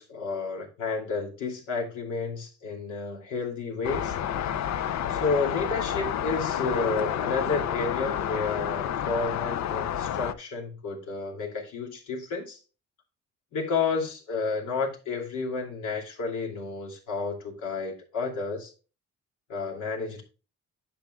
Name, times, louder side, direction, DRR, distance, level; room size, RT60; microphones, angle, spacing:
voice 1, 0.0-4.2 5.1-12.6 13.5-18.7 19.5-20.2, left 4 dB, 80° left, -1 dB, 2.8 m, -31 dB
sound 1, 3.8-10.3, left 10 dB, 65° left, 0.7 m, -29 dB
10.0 x 7.2 x 2.3 m, 0.34 s
cardioid pair, 90°, 30 cm